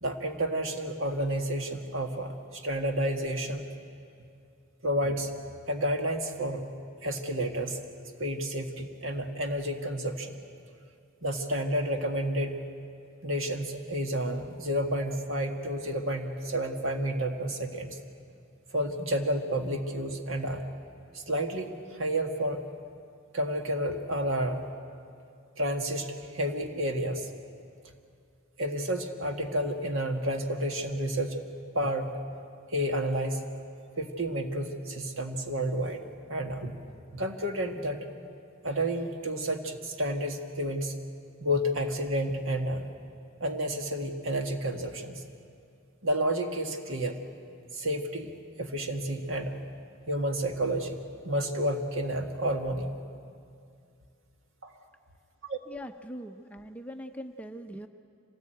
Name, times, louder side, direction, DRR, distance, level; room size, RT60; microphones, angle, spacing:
voice 1, 0.0-3.6 4.8-5.3 5.7-6.7 7.0-7.8 8.2-10.4 11.2-12.5 13.2-18.0 18.7-20.6 21.1-22.6 23.3-24.7 25.6-27.3 28.6-31.4 31.7-32.1 32.7-33.4 34.0-36.0 36.3-36.8 37.1-38.1 38.6-40.9 41.4-42.9 43.4-45.2 46.0-47.2 47.7-49.5 50.1-51.0 51.2-52.9 54.6-54.7 55.5-55.6, right 1 dB, 65° right, 5 dB, 1.9 m, -30 dB
voice 2, 55.7-57.9, equal, 5° left, 5 dB, 0.7 m, -41 dB
26.0 x 18.5 x 9.1 m, 2.4 s
head